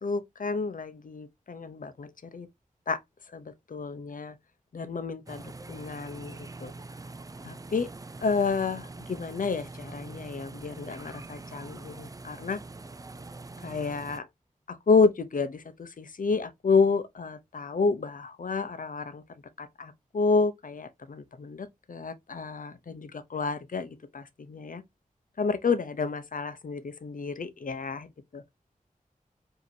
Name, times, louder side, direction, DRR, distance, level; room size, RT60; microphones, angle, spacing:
voice 1, 0.0-2.5 2.9-3.0 3.3-4.4 4.7-6.7 7.4-7.9 8.2-12.6 13.6-14.3 14.7-19.2 19.6-24.8 25.4-28.4, left 4 dB, 70° left, 0.6 m, -30 dB
sound 1, 5.2-14.2, right 3 dB, 25° right, 0.4 m, -44 dB
5.0 x 2.8 x 2.6 m
wide cardioid pair, 75°, 14 cm